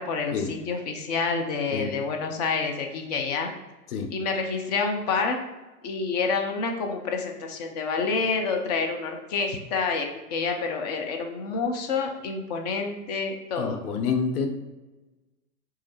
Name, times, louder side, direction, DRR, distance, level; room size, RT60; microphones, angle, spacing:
voice 1, 0.0-3.5 4.1-5.4 5.8-13.8, left 4 dB, 30° left, 3 dB, 0.4 m, -28 dB
voice 2, 13.6-14.5, left 5 dB, 70° left, 5 dB, 0.9 m, -27 dB
3.6 x 3.1 x 4.2 m, 1.1 s
hypercardioid pair, 120°, 46 cm